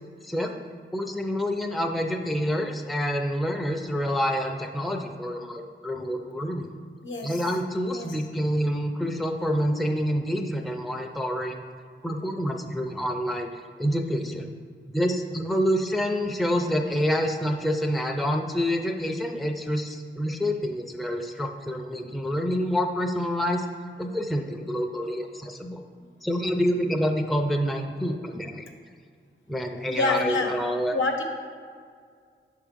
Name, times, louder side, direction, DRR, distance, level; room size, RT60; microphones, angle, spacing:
voice 1, 0.2-0.5 0.9-6.7 7.2-11.6 12.0-13.5 13.8-14.5 14.9-23.7 24.0-25.8 26.2-28.6 29.5-31.0, equal, ahead, 3 dB, 0.4 m, -27 dB
voice 2, 29.9-30.5 30.9-31.2, left 3 dB, 70° left, 2 dB, 0.8 m, -26 dB
6.4 x 3.6 x 5.1 m, 2.1 s
cardioid pair, 75°, 20 cm